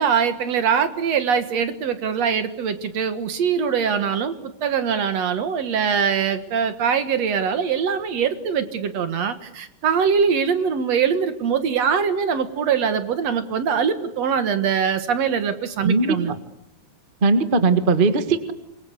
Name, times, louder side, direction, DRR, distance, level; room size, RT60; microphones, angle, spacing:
voice 1, 0.0-16.3, right 7 dB, 55° right, 10 dB, 2.4 m, -22 dB
voice 2, 15.8-16.2 17.2-18.5, right 3 dB, 30° right, 9 dB, 1.0 m, -18 dB
27.0 x 22.5 x 8.2 m, 0.84 s
omnidirectional pair, 3.8 m